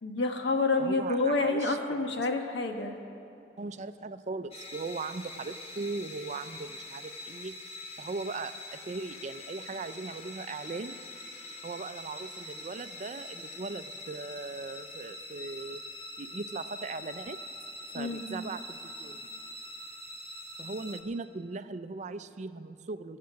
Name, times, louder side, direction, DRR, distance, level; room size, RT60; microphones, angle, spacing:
voice 1, 0.0-3.0 17.9-18.4, left 3 dB, 85° left, 4 dB, 1.3 m, -28 dB
voice 2, 0.8-2.1 3.6-7.5 8.0-11.0 11.6-15.8 16.2-17.4 17.9-19.3 20.6-23.2, right 3 dB, 40° right, 11 dB, 0.4 m, -39 dB
sound 1, 4.5-21.0, left 1 dB, 35° left, 1.2 m, -44 dB
21.5 x 7.5 x 5.8 m, 2.8 s
head